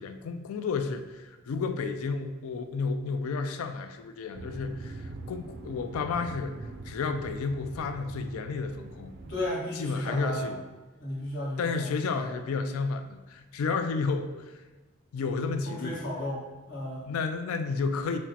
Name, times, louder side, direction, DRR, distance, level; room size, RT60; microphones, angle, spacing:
voice 1, 0.0-9.1 9.8-10.6 11.6-14.6 15.1-16.0 17.0-18.2, left 4 dB, 80° left, 8 dB, 0.3 m, -32 dB
sound 1, 4.3-9.5, right 2 dB, 50° right, 0.3 m, -43 dB
voice 2, 9.2-10.5 11.0-12.3 15.6-17.1, left 1 dB, 55° left, -7 dB, 1.3 m, -34 dB
6.0 x 2.1 x 2.8 m, 1.2 s
head